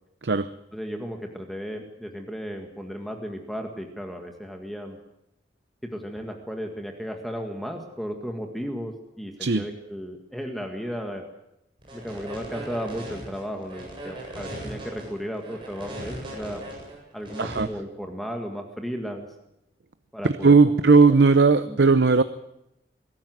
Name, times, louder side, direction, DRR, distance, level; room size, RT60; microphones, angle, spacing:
voice 1, 0.7-5.0 5.8-11.3 11.9-16.6 17.1-19.3 20.1-20.6 21.1-21.2 21.7-21.8, equal, ahead, 3 dB, 1.9 m, -34 dB
sound 1, 11.8-17.6, right 1 dB, 30° right, 7.9 m, -38 dB
voice 2, 20.2-22.2, right 4 dB, 75° right, 12 dB, 0.7 m, -17 dB
22.5 x 13.5 x 9.3 m, 0.86 s
head